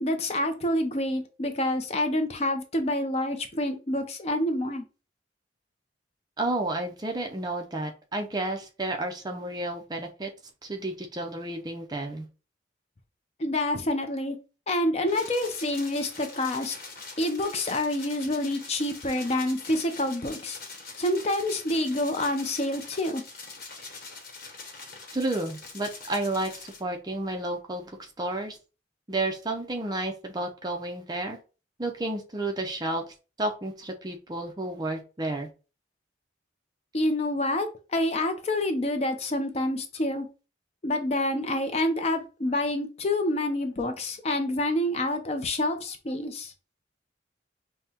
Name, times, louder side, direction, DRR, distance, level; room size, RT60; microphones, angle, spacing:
voice 1, 0.0-4.8 13.4-14.4 14.7-16.7 17.2-20.6 21.0-23.2 36.9-40.3 40.8-46.5, left 1 dB, 35° left, 0.5 m, -27 dB
voice 2, 6.4-10.3 10.6-12.3 25.1-28.6 29.1-31.4 31.8-33.0 33.4-35.5, right 2 dB, 20° right, 0.5 m, -31 dB
sound 1, 15.1-26.8, left 4 dB, 55° left, 1.0 m, -44 dB
5.5 x 2.1 x 2.9 m
head